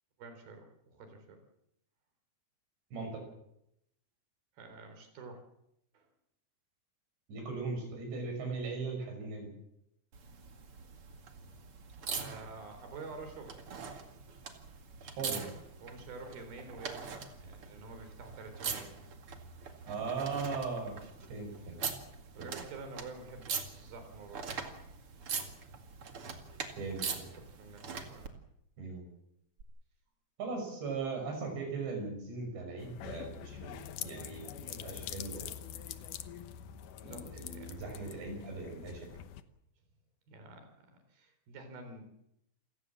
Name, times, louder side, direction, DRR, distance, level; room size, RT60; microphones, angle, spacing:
voice 1, 0.2-1.4 4.6-5.4 5.9-6.1 12.2-13.6 15.8-18.9 22.3-24.4 27.3-28.3 37.0-38.2 40.3-42.1, right 3 dB, 60° right, 7 dB, 5.6 m, -49 dB
voice 2, 2.9-3.2 7.3-9.5 15.0-15.5 19.9-21.0 21.3-21.8 22.4-22.5 26.8-27.3 28.8-29.0 30.4-33.8 34.0-35.5 37.0-39.1, right 4 dB, 85° right, 3 dB, 8.4 m, -39 dB
sound 1, 10.1-28.3 29.6-29.7, right 5 dB, 40° right, 2.4 m, -43 dB
sound 2, 32.8-39.4, left 10 dB, 70° left, 2.1 m, -45 dB
28.5 x 16.5 x 7.5 m, 0.80 s
omnidirectional pair, 4.9 m